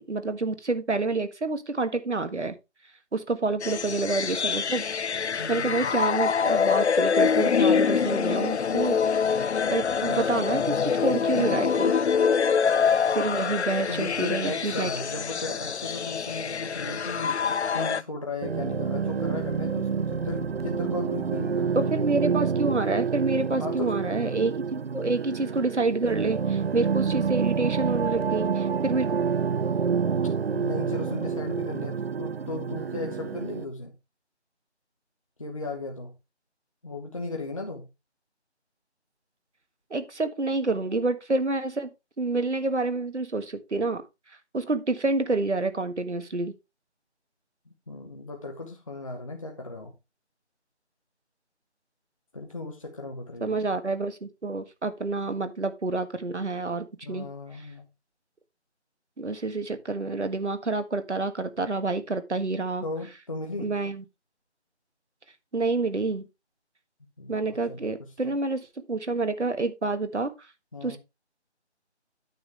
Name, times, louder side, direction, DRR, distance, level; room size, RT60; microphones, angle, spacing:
voice 1, 0.1-2.5 3.1-4.8 5.2-9.0 9.3-9.4 9.7-11.9 13.1-14.9 21.7-29.1 39.9-41.9 42.2-44.0 44.5-46.5 53.4-57.3 59.2-62.8 63.6-64.0 65.5-66.3 67.3-70.3 70.8-71.0, right 3 dB, 80° right, 1.6 m, -28 dB
sound 1, 3.6-18.0, left 6 dB, 75° left, 0.5 m, -25 dB
voice 2, 5.4-5.8 13.9-22.0 23.6-24.0 30.5-33.9 35.4-36.1 36.8-37.9 47.7-49.9 52.3-53.6 57.0-57.9 62.8-63.7 67.2-67.4 67.7-68.1 70.7-71.0, left 2 dB, 30° left, 1.0 m, -36 dB
sound 2, 18.4-33.7, right 6 dB, 60° right, 0.5 m, -28 dB
9.3 x 7.4 x 3.3 m
figure-of-eight pair, 165°, 34 cm